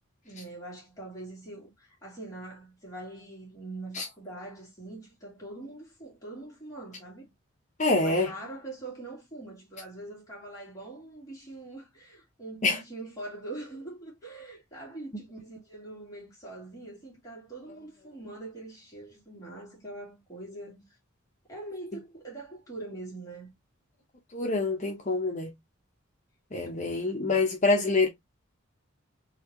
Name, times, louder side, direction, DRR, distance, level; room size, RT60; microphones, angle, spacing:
voice 1, 0.2-7.3 8.0-20.9 21.5-23.5, right 2 dB, 15° left, 2.0 m, -43 dB
voice 2, 7.8-8.3 12.6-12.8 24.3-25.5 26.5-28.1, left 3 dB, 35° left, 0.8 m, -26 dB
4.1 x 2.9 x 3.0 m
head